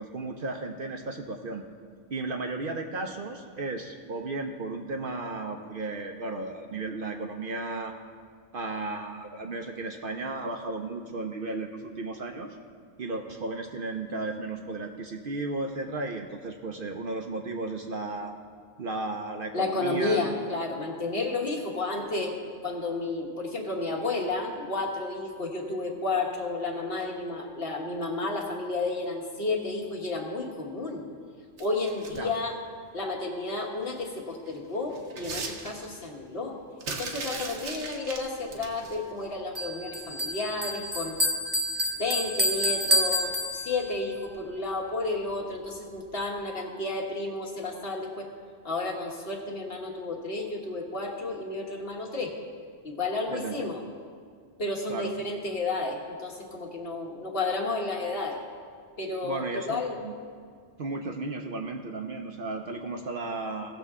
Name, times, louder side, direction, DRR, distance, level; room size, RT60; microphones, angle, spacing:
voice 1, 0.0-1.6 2.1-7.9 8.5-12.6 13.0-18.3 18.8-20.2 32.1-32.3 42.9-43.0 53.3-53.7 54.9-55.2 59.2-60.1 60.8-63.8, right 2 dB, 55° right, 3 dB, 0.7 m, -34 dB
voice 2, 19.5-22.4 22.6-31.0 31.6-32.6 32.9-36.6 36.9-41.2 42.0-48.3 48.6-52.3 52.8-53.8 54.6-58.4 59.0-60.0, left 3 dB, 50° left, -1 dB, 1.5 m, -32 dB
sound 1, 31.6-32.4 33.9-34.1 34.5-36.1 36.8-39.0 40.0-40.1 40.5-40.6, right 4 dB, 75° right, 1.3 m, -38 dB
Bell, 39.6-44.1, left 1 dB, 25° right, 0.7 m, -28 dB
17.0 x 6.8 x 3.6 m, 2.1 s
omnidirectional pair, 1.2 m